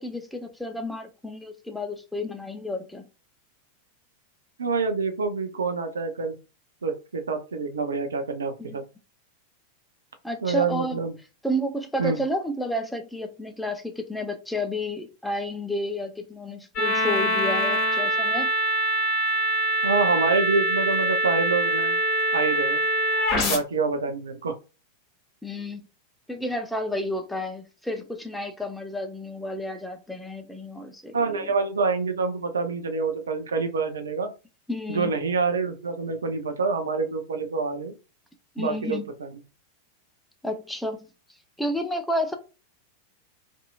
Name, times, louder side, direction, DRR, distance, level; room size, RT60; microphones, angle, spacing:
voice 1, 0.0-3.1 8.6-8.8 10.2-11.0 11.4-18.5 23.3-23.6 25.4-25.8 26.3-31.5 34.7-35.1 38.6-39.1 40.4-41.1 41.6-42.4, left 1 dB, 5° left, 0.5 m, -31 dB
voice 2, 4.6-6.4 6.8-8.8 10.4-11.1 12.0-12.2 19.8-22.0 22.3-22.8 23.4-24.5 31.1-34.3 34.9-37.9 38.6-39.3, right 4 dB, 70° right, 0.5 m, -26 dB
sound 1, 16.8-23.6, right 1 dB, 40° left, 1.1 m, -24 dB
2.7 x 2.5 x 2.4 m
figure-of-eight pair, 90°, 0 cm